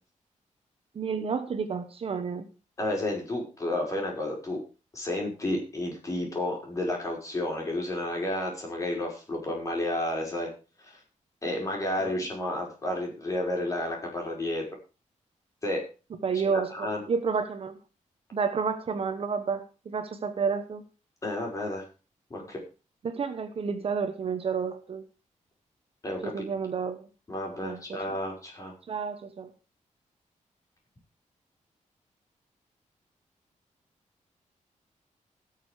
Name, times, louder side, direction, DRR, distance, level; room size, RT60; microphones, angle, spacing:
voice 1, 0.9-2.5 12.0-12.1 16.2-17.8 18.3-20.8 23.0-25.0 26.2-27.1 27.6-28.2 28.9-29.5, right 5 dB, 50° right, 8 dB, 1.2 m, -30 dB
voice 2, 2.8-4.6 4.9-10.5 10.8-11.0 11.4-14.6 15.6-15.8 16.4-17.0 21.2-21.8 22.3-22.6 26.0-26.5 27.3-28.7, left 1 dB, 25° left, -1 dB, 5.3 m, -31 dB
17.0 x 6.8 x 4.9 m, 0.33 s
wide cardioid pair, 175°, 13 cm